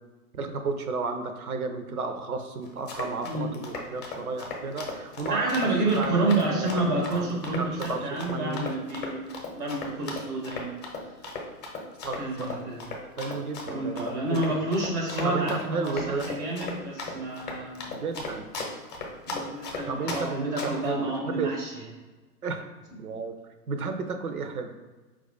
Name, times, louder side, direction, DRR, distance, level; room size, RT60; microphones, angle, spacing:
voice 1, 0.3-5.4 5.9-8.7 12.0-12.6 13.2-14.6 15.2-16.3 17.9-18.4 19.9-21.5 22.4-22.6 23.0-23.3 23.7-24.7, right 4 dB, 70° right, 7 dB, 0.7 m, -33 dB
Run, 2.7-20.2 20.6-20.9, left 3 dB, 30° left, 0.8 m, -36 dB
voice 2, 5.3-10.7 12.2-12.8 13.7-17.9 19.2-21.7, right 2 dB, 10° right, -2 dB, 0.5 m, -29 dB
4.7 x 2.5 x 3.8 m, 1.2 s
figure-of-eight pair, 110°, 45 cm